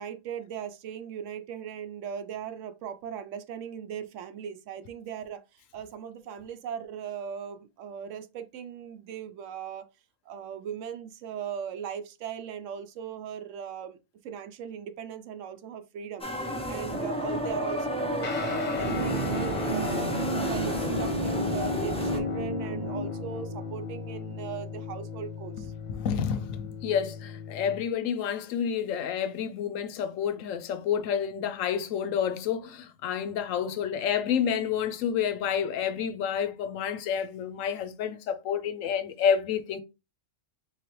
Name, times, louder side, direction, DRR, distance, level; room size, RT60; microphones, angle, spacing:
voice 1, 0.0-9.9 10.3-14.0 14.2-20.1 20.4-25.7, right 8 dB, 75° right, 0.9 m, -38 dB
sound 1, 16.2-22.2, equal, 10° left, 0.3 m, -32 dB
Guitar, 18.2-27.8, left 6 dB, 40° left, 0.9 m, -37 dB
sound 2, 18.7-24.8 25.0-25.1, right 2 dB, 25° right, 0.9 m, -33 dB
voice 2, 25.9-39.8, left 8 dB, 85° left, 1.0 m, -29 dB
3.9 x 3.2 x 3.0 m
omnidirectional pair, 1.3 m